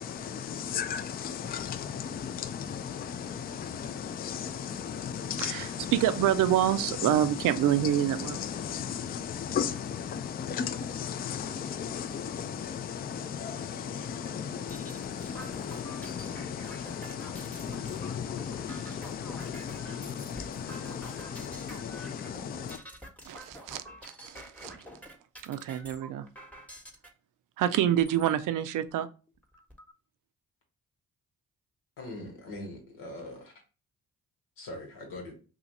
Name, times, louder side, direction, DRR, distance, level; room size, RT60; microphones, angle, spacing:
voice 1, 0.0-22.8, left 7 dB, 30° left, 0.4 m, -36 dB
voice 2, 5.4-8.4 23.3-23.8 24.2-24.8 25.4-26.2 27.6-29.1, right 11 dB, 65° right, 0.5 m, -27 dB
sound 1, 14.3-27.1 27.8-28.3 28.9-29.0 29.3-29.9, equal, 5° left, 1.0 m, -47 dB
voice 3, 32.0-33.5 34.6-35.3, left 1 dB, 80° left, 1.2 m, -41 dB
2.7 x 2.4 x 4.0 m
supercardioid pair, 55°, 34 cm